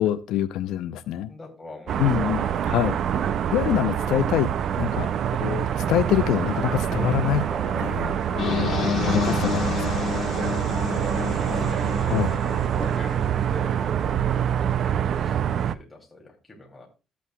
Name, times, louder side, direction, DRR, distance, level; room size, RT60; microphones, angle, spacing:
voice 1, 0.0-1.3 2.0-2.9 3.3-4.5 4.8-7.4 7.8-10.1 12.1-12.3, left 12 dB, 85° left, 0.6 m, -26 dB
voice 2, 1.2-2.5 10.9-14.1 14.5-15.4 15.6-16.9, left 2 dB, 10° left, 2.8 m, -44 dB
sound 1, 1.9-15.7, right 9 dB, 45° right, 0.4 m, -25 dB
sound 2, 4.6-12.6, left 1 dB, 25° right, 4.8 m, -41 dB
sound 3, 8.4-13.3, left 7 dB, 40° left, 1.5 m, -30 dB
14.0 x 8.4 x 2.3 m
cardioid pair, 175°, 0 cm